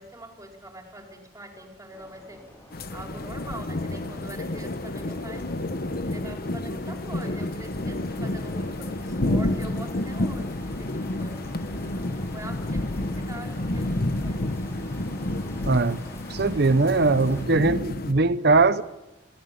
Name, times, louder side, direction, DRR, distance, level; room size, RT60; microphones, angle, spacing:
voice 1, 0.0-2.4 2.9-5.5 6.0-11.9 12.3-14.6, right 1 dB, 20° right, 2 dB, 4.5 m, -43 dB
sound 1, 1.9-17.5, left 1 dB, 15° left, 5.5 m, -48 dB
sound 2, 2.7-18.1, left 1 dB, 55° left, 1.1 m, -30 dB
voice 2, 15.7-16.0 16.3-18.8, right 3 dB, 65° right, 15 dB, 0.8 m, -20 dB
21.5 x 17.0 x 8.5 m, 0.97 s
head